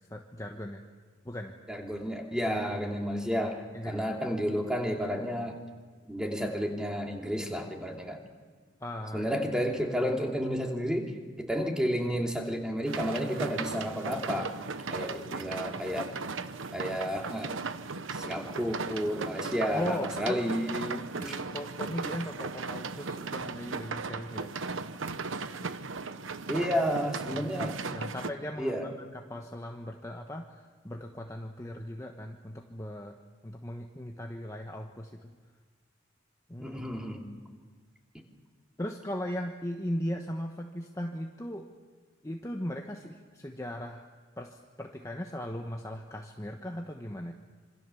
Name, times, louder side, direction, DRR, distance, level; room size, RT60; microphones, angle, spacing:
voice 1, 0.1-0.8 1.2-1.6 3.7-4.2 8.8-9.3 19.7-20.3 21.2-24.5 27.3-28.8 29.1-33.2 33.4-35.3 36.5-36.8 38.8-41.6 42.2-44.0 44.4-47.3, left 1 dB, 15° left, 2 dB, 1.2 m, -38 dB
voice 2, 1.7-5.6 6.1-8.2 9.1-11.1 11.4-14.5 14.9-16.1 16.7-17.5 18.1-21.1 26.5-27.8 28.6-28.9 36.6-37.3 38.1-38.2, equal, 5° right, 1 dB, 2.8 m, -31 dB
sound 1, 12.8-28.3, right 4 dB, 80° right, 1.0 m, -37 dB
27.0 x 25.0 x 7.1 m, 1.5 s
head